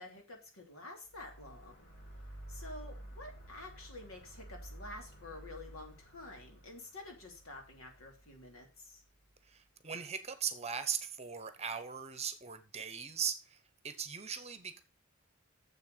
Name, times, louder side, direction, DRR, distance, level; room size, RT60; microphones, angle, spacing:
voice 1, 0.0-1.9 2.5-9.0, left 2 dB, 80° left, 3.1 m, -49 dB
sound 1, 1.1-9.4, right 1 dB, 50° left, 4.7 m, -52 dB
voice 2, 9.5-13.6 13.8-14.8, right 7 dB, 30° right, 1.1 m, -39 dB
7.4 x 6.6 x 6.7 m
head